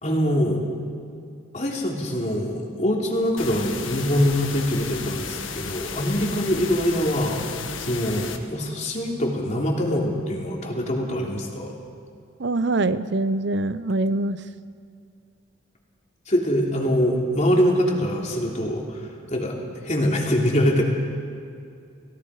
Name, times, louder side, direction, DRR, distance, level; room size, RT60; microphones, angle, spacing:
voice 1, 0.0-0.6 1.5-11.7 16.3-20.8, equal, 35° left, -1 dB, 3.1 m, -24 dB
sound 1, 3.4-8.4, left 5 dB, 80° left, 1.6 m, -34 dB
voice 2, 12.4-14.4, right 2 dB, 60° right, 14 dB, 0.7 m, -24 dB
29.5 x 18.0 x 4.9 m, 2.4 s
head